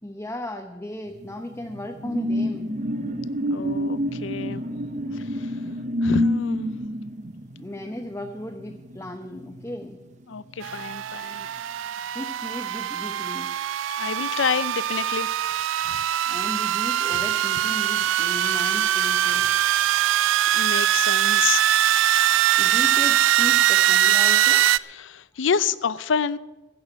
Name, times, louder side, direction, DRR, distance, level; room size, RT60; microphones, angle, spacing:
voice 1, 0.0-2.8 7.6-10.0 12.1-13.6 16.3-19.5 22.6-24.7, left 1 dB, 15° left, 0.7 m, -35 dB
sound 1, 1.2-10.1 10.5-10.7, equal, 40° right, 0.7 m, -28 dB
voice 2, 3.5-4.6 5.1-5.6 6.0-6.7 10.3-11.5 14.0-15.3 15.8-16.0 20.1-20.2 20.5-21.6 24.9-26.4, left 6 dB, 75° left, 0.5 m, -28 dB
sound 2, 10.6-24.8, right 11 dB, 80° right, 0.4 m, -22 dB
15.5 x 6.4 x 9.7 m
head